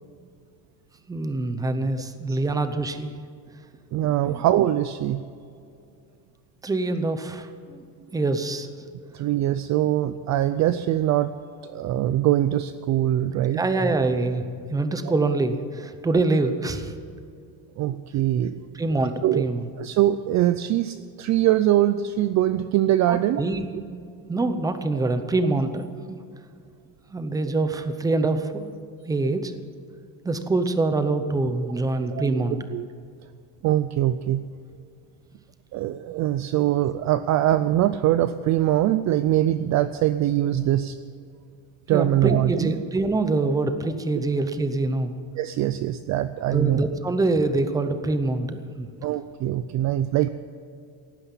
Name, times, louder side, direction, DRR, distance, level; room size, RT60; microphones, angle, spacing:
voice 1, 1.1-3.2 4.2-4.4 6.6-7.8 8.1-8.7 13.5-14.4 14.7-16.9 18.7-19.7 23.1-26.2 27.1-28.7 29.1-29.5 30.2-32.6 41.9-45.2 46.5-48.9, right 2 dB, 10° right, 9 dB, 0.7 m, -25 dB
voice 2, 3.9-5.2 9.1-11.3 11.7-13.6 15.0-15.1 17.8-18.6 19.2-19.5 19.8-23.4 32.0-32.9 33.6-34.4 35.7-41.0 41.9-42.7 45.4-46.8 49.0-50.3, right 13 dB, 40° right, 12 dB, 0.4 m, -23 dB
17.5 x 9.7 x 8.3 m, 2.4 s
cardioid pair, 180°, 44 cm